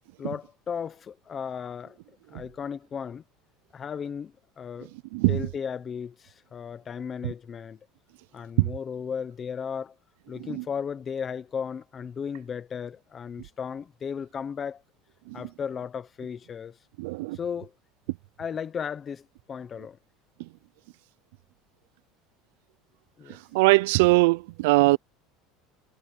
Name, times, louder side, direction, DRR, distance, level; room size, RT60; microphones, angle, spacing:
voice 1, 0.2-2.0 2.3-3.2 3.7-4.9 5.3-7.8 8.3-9.9 10.3-14.8 15.3-16.8 17.3-17.7 18.4-20.0 23.2-23.4, left 7 dB, 20° left, 1.0 m, -35 dB
voice 2, 5.1-5.4 7.2-7.3 8.6-8.7 10.5-10.6 15.3-15.4 17.0-17.4 23.5-25.0, right 22 dB, 80° right, 0.5 m, -21 dB
cardioid pair, 165°, 0 cm